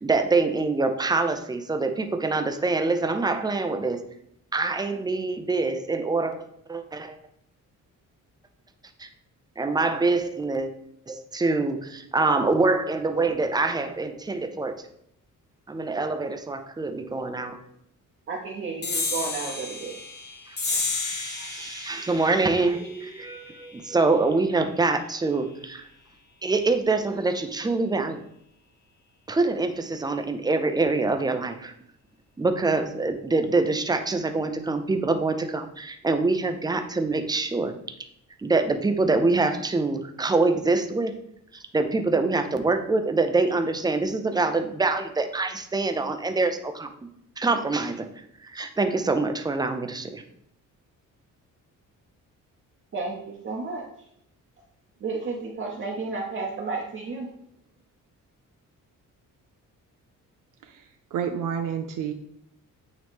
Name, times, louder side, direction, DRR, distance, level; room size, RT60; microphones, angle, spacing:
voice 1, 0.0-4.0 4.5-7.2 9.0-9.1 9.6-10.7 11.1-14.7 15.7-17.6 20.8-25.8 26.4-28.2 29.3-31.7 32.4-37.7 38.4-41.1 41.5-46.9 47.4-48.1 48.4-50.2, right 3 dB, 15° right, 6 dB, 0.5 m, -25 dB
voice 2, 18.3-20.0 52.9-53.9 55.0-57.3, right 4 dB, 40° right, -1 dB, 0.9 m, -32 dB
sound 1, 18.8-25.7, left 3 dB, 30° left, 1.0 m, -33 dB
voice 3, 60.6-62.1, right 8 dB, 75° right, 5 dB, 0.6 m, -30 dB
8.9 x 3.1 x 3.5 m, 0.72 s
cardioid pair, 150°, 32 cm